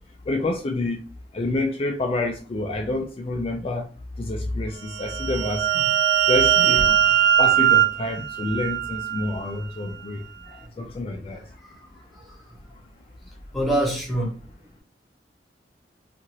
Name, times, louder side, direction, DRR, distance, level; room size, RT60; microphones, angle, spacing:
voice 1, 0.3-1.0 1.3-3.9 4.2-5.6 6.2-6.8 7.4-10.2 10.8-11.4, left 2 dB, 35° left, 1 dB, 0.4 m, -27 dB
sound 1, 4.9-9.4, right 11 dB, 70° right, 0.3 m, -20 dB
voice 2, 6.7-7.1 13.5-14.3, right 1 dB, ahead, -2 dB, 0.8 m, -25 dB
2.7 x 2.5 x 3.0 m, 0.38 s
head